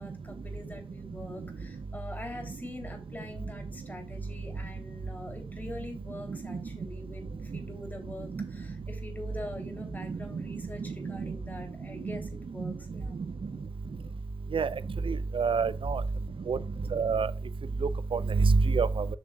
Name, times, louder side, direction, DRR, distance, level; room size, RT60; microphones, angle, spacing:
voice 1, 0.0-13.2, left 1 dB, 20° left, 2.9 m, -44 dB
voice 2, 15.1-16.0 16.5-16.6 16.9-17.3 18.1-19.0, right 4 dB, 80° right, 0.5 m, -25 dB
7.2 x 6.3 x 2.3 m
cardioid pair, 50°, 9 cm